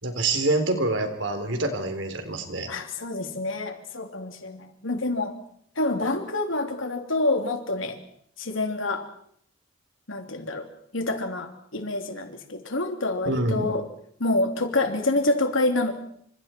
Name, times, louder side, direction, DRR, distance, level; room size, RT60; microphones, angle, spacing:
voice 1, 0.0-2.7 13.2-13.7, right 2 dB, 70° right, 7 dB, 3.7 m, -26 dB
voice 2, 2.7-5.3 5.8-8.0 8.4-9.1 10.1-10.7 10.9-13.8 14.2-15.9, left 2 dB, 80° left, 5 dB, 3.1 m, -27 dB
28.5 x 26.0 x 4.5 m, 0.66 s
head